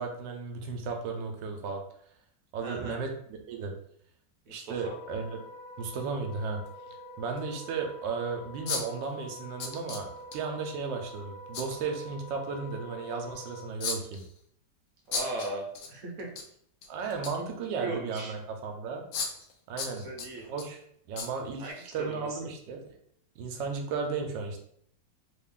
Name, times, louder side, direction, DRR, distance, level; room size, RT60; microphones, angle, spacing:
voice 1, 0.0-1.8 2.5-3.2 3.5-3.7 4.5-5.3 5.8-6.6 7.2-14.2 16.9-19.0 19.7-20.1 20.5-20.8 21.1-23.0 23.4-24.6, right 5 dB, 85° right, 3 dB, 1.3 m, -34 dB
voice 2, 2.6-3.0 4.5-4.9 15.1-16.3 17.7-18.3 19.9-20.5 21.6-22.4, right 2 dB, 60° right, 0 dB, 1.0 m, -38 dB
sound 1, 4.7-4.8 6.7-6.8 7.4-7.5 8.7-9.0 9.6-10.4 11.5-11.8 13.8-14.3 15.1-15.9 16.2-16.4 16.8-17.5 18.2-18.3 19.1-19.5 19.8-20.7 21.2-21.3 21.7-21.8, left 4 dB, 80° left, 0.7 m, -35 dB
Wind instrument woodwind instrument, 4.7-13.7, equal, 25° left, 0.8 m, -46 dB
3.3 x 2.4 x 3.5 m, 0.66 s
omnidirectional pair, 1.9 m